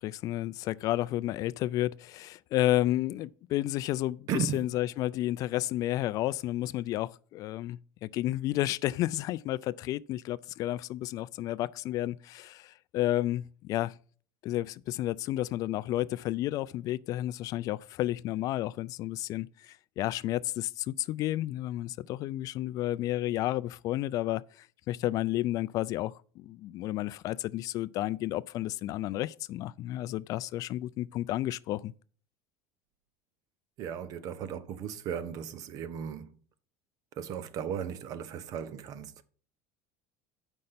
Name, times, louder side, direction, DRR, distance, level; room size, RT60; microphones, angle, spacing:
voice 1, 0.0-4.3 4.5-13.9 14.4-31.9, left 15 dB, 50° left, 0.3 m, -31 dB
voice 2, 4.3-4.7 33.8-36.3 37.2-39.2, right 8 dB, 50° right, 0.9 m, -36 dB
7.8 x 5.3 x 5.7 m
supercardioid pair, 130°, 8 cm